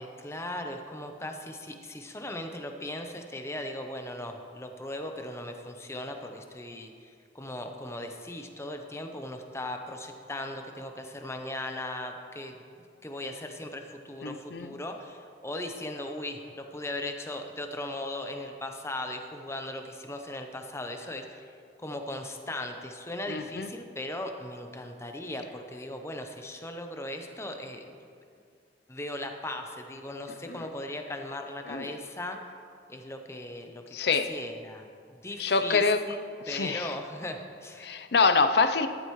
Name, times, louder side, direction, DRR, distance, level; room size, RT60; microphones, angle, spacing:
voice 1, 0.0-12.5 13.0-21.4 21.8-27.9 28.9-32.4 32.9-33.8 34.3-36.2 36.5-37.9, left 1 dB, 15° left, 4 dB, 0.7 m, -38 dB
voice 2, 14.2-14.7 23.3-23.7 30.5-30.7 31.7-31.9 33.9-34.3 35.4-36.0 36.5-36.9 37.8-38.9, left 4 dB, 60° left, 9 dB, 0.6 m, -26 dB
13.5 x 11.5 x 3.2 m, 2.3 s
head